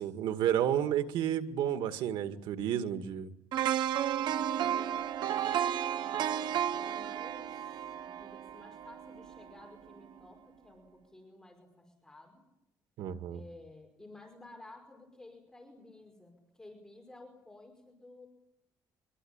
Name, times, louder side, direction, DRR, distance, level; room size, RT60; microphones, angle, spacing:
voice 1, 0.0-3.3 13.0-13.4, right 10 dB, 85° right, 8 dB, 2.0 m, -31 dB
sound 1, 3.5-9.5 9.9-10.0, right 10 dB, 65° right, 1.0 m, -33 dB
voice 2, 4.2-12.4 13.3-18.3, left 2 dB, 5° left, 1 dB, 5.3 m, -53 dB
25.0 x 24.0 x 8.9 m, 0.83 s
cardioid pair, 150°, 8 cm